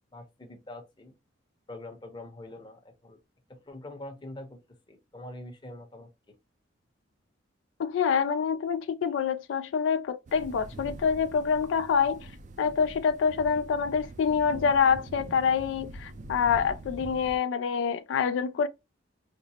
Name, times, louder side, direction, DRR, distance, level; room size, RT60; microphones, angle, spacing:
voice 1, 0.1-1.1 1.7-3.2 3.7-4.6 4.9-6.1, left 1 dB, 25° left, 0.9 m, -44 dB
voice 2, 7.8-12.2 12.6-18.7, left 6 dB, 70° left, 0.3 m, -26 dB
sound 1, 10.3-17.4, right 2 dB, 40° right, 0.4 m, -44 dB
5.1 x 2.0 x 2.8 m
head